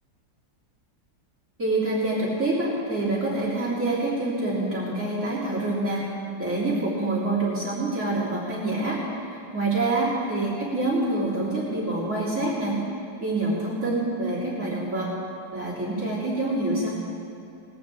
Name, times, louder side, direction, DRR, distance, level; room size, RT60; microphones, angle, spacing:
voice 1, 1.6-6.1 6.4-12.8 13.2-15.1 15.5-16.9, right 2 dB, 45° right, -8 dB, 3.6 m, -26 dB
20.0 x 14.5 x 3.7 m, 2.7 s
omnidirectional pair, 1.8 m